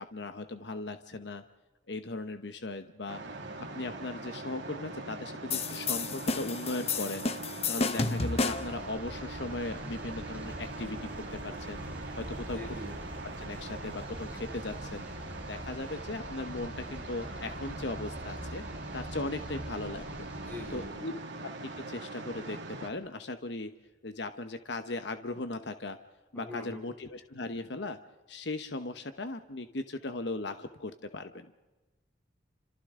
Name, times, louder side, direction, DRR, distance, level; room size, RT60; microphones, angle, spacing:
voice 1, 0.0-1.4 1.9-3.2 3.6-7.3 7.7-11.8 12.2-12.6 13.4-15.1 15.5-18.6 18.9-20.3 20.7-21.1 21.4-23.7 24.0-26.0 26.3-28.0 28.3-31.5, left 2 dB, 70° left, 9 dB, 1.0 m, -38 dB
sound 1, 3.1-22.9, right 2 dB, 80° right, 2.4 m, -42 dB
sound 2, 5.5-8.8, left 4 dB, 35° left, 0.9 m, -31 dB
sound 3, 8.5-20.9, equal, 10° right, 3.4 m, -44 dB
voice 2, 12.5-12.9 20.4-21.1 26.3-26.8, left 2 dB, 10° left, 0 dB, 5.2 m, -43 dB
29.5 x 26.5 x 3.8 m, 1.1 s
head